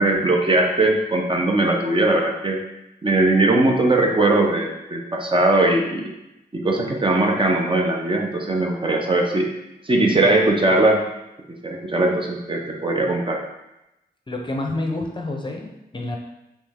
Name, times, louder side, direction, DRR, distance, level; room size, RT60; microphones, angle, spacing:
voice 1, 0.0-2.6 3.0-6.1 6.5-9.5 9.8-11.0 11.5-13.4, right 2 dB, 30° right, 1 dB, 0.6 m, -20 dB
voice 2, 14.3-16.2, left 2 dB, 30° left, 1 dB, 0.6 m, -28 dB
3.4 x 3.1 x 3.4 m, 0.91 s
cardioid pair, 60°, 17 cm